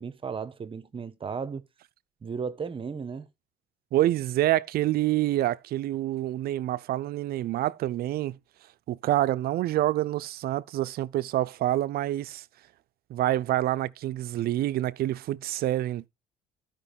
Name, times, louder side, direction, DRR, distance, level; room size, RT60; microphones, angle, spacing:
voice 1, 0.0-1.6 2.2-3.3, right 5 dB, 30° right, 1.1 m, -35 dB
voice 2, 3.9-8.4 8.9-12.4 13.1-16.1, right 14 dB, 65° right, 0.6 m, -27 dB
12.5 x 5.2 x 5.2 m
cardioid pair, 110°, 17 cm